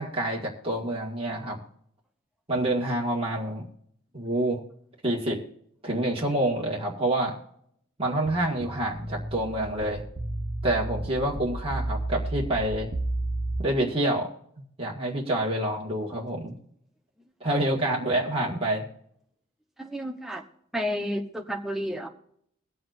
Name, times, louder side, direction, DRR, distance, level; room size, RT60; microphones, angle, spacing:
voice 1, 0.0-1.6 2.5-3.6 4.1-4.6 5.0-5.4 5.8-7.4 8.0-10.0 10.6-12.9 13.6-14.3 14.8-16.5 17.4-18.9, right 1 dB, 30° right, -3 dB, 1.9 m, -27 dB
sound 1, 8.3-13.6, right 1 dB, 50° right, 1.2 m, -32 dB
voice 2, 19.8-20.4 20.7-22.1, equal, ahead, 2 dB, 1.0 m, -31 dB
22.5 x 7.7 x 2.6 m, 0.68 s
head